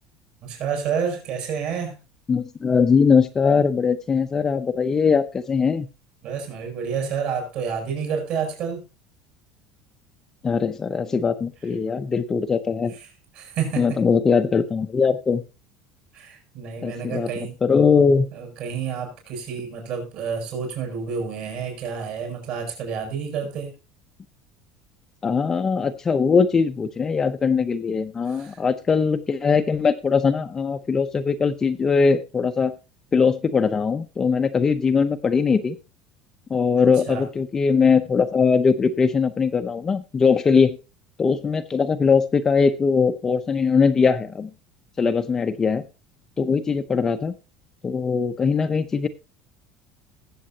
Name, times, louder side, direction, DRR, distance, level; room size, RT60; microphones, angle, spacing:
voice 1, 0.4-2.0 6.2-8.8 13.3-14.0 16.1-17.6 18.3-23.7 28.2-28.6 37.1-37.2, right 6 dB, 55° right, 2 dB, 6.9 m, -29 dB
voice 2, 2.3-5.9 10.4-12.9 13.8-15.4 16.8-18.3 25.2-32.7 33.1-35.8 36.5-40.8 41.2-44.5 45.0-45.8 46.4-47.3 47.8-49.1, left 5 dB, 20° left, 7 dB, 0.7 m, -21 dB
20.5 x 7.5 x 2.8 m, 0.28 s
cardioid pair, 155°, 2 cm